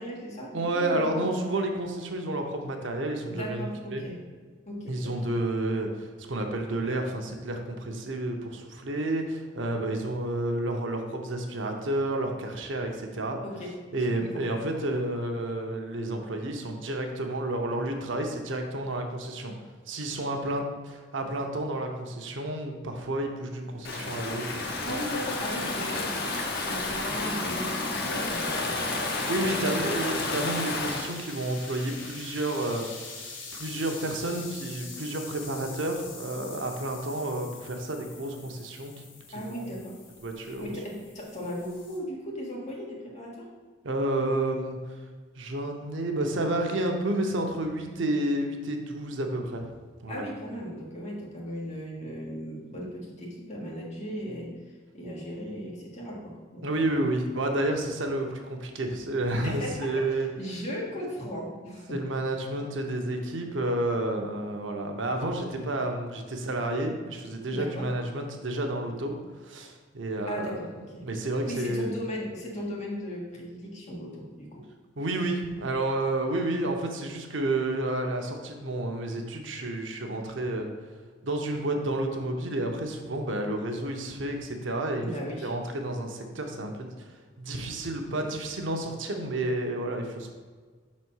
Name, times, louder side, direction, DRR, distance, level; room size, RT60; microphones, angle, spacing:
voice 1, 0.0-1.3 3.3-4.2 4.6-5.1 13.4-13.7 14.1-14.5 24.8-29.2 29.5-29.9 39.3-40.0 40.4-43.5 50.1-54.5 54.9-57.0 59.4-60.0 60.3-62.0 67.5-67.9 70.3-70.7 70.9-71.0 71.5-74.6 85.0-85.5, equal, 40° left, -3 dB, 1.6 m, -37 dB
voice 2, 0.5-4.0 4.9-13.4 13.9-19.5 19.9-25.0 29.3-38.9 40.2-40.7 43.8-44.8 45.4-49.7 50.0-50.3 56.6-60.3 61.9-69.1 69.4-70.6 71.0-71.9 75.0-80.7 81.2-85.1 85.4-90.3, right 1 dB, 85° right, 3 dB, 0.8 m, -30 dB
sound 1, 23.8-42.0, left 4 dB, 85° left, 1.7 m, -44 dB
Stream / Ocean, 23.8-31.1, left 3 dB, 55° left, 1.0 m, -31 dB
5.5 x 4.2 x 6.1 m, 1.5 s
head